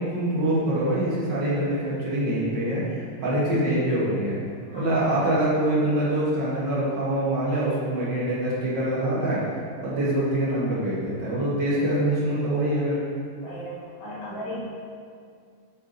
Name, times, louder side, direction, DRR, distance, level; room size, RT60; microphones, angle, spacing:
voice 1, 0.0-4.4 4.7-9.4 9.8-13.0, right 1 dB, 55° right, -8 dB, 2.1 m, -24 dB
voice 2, 13.4-14.6, equal, 60° left, -9 dB, 2.8 m, -37 dB
8.0 x 4.9 x 3.9 m, 2.2 s
omnidirectional pair, 2.4 m